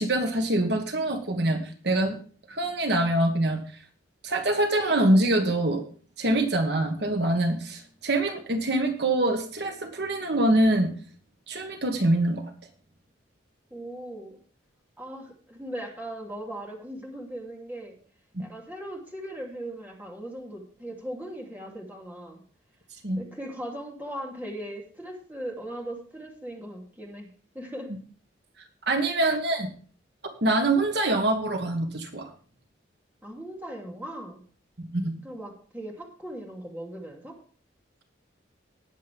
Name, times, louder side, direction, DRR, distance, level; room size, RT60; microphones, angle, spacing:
voice 1, 0.0-2.2 2.5-3.8 4.2-5.8 6.2-10.9 11.5-12.5 18.3-18.4 23.0-23.2 28.8-29.7 30.4-32.3 34.9-35.2, right 1 dB, 60° right, 5 dB, 1.4 m, -24 dB
voice 2, 13.7-14.4 15.0-18.0 18.4-22.4 23.2-27.3 27.5-27.9 28.9-29.2 33.2-34.4 35.2-37.4, right 1 dB, 10° right, 0 dB, 2.8 m, -38 dB
19.0 x 7.5 x 3.5 m, 0.43 s
head